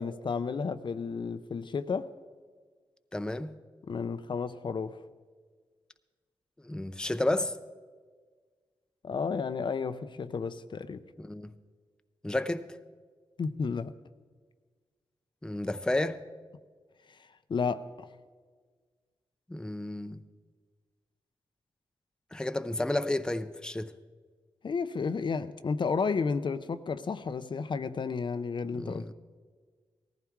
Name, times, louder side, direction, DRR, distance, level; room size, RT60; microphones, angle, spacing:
voice 1, 0.0-2.1 3.9-5.0 9.0-11.0 13.4-13.9 17.1-17.2 17.5-18.1 24.6-29.1, left 5 dB, 55° left, 0.6 m, -32 dB
voice 2, 3.1-3.5 6.6-7.6 11.2-11.5 12.2-12.7 15.4-16.2 19.5-20.2 22.3-23.9 28.8-29.1, left 1 dB, 10° left, 0.6 m, -31 dB
18.5 x 14.5 x 4.7 m
wide cardioid pair, 90°, 10 cm